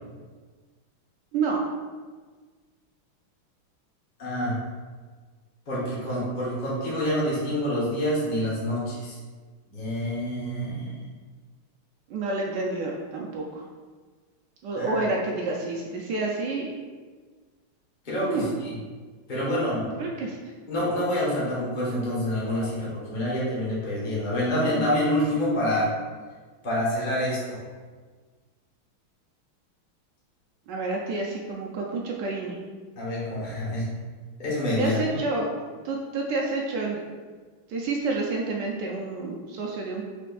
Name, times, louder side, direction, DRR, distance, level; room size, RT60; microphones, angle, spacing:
voice 1, 4.2-4.6 5.7-9.2 9.7-11.0 14.7-15.0 18.0-18.7 19.3-19.9 20.7-25.9 26.6-27.6 33.0-33.8 34.4-35.0, left 1 dB, 30° left, -7 dB, 0.9 m, -27 dB
voice 2, 12.1-13.6 14.6-16.7 18.2-18.6 20.0-20.4 30.7-32.6 34.8-35.5 35.8-37.0 37.7-40.1, right 3 dB, 75° right, -1 dB, 1.0 m, -29 dB
5.0 x 4.4 x 2.3 m, 1.4 s
omnidirectional pair, 2.4 m